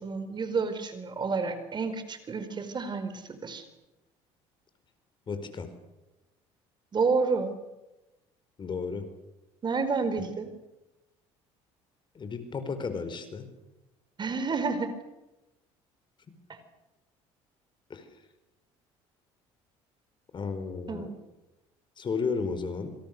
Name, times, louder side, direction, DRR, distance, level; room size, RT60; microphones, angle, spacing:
voice 1, 0.0-3.7 6.9-7.6 9.6-10.5 14.2-14.9 20.9-21.1, right 4 dB, 35° right, 10 dB, 4.5 m, -30 dB
voice 2, 5.3-5.7 8.6-9.0 10.2-10.3 12.1-13.5 17.9-18.1 20.3-21.1 22.0-23.0, left 5 dB, 40° left, 9 dB, 4.9 m, -33 dB
27.5 x 26.0 x 6.9 m, 0.99 s
supercardioid pair, 85°, 13 cm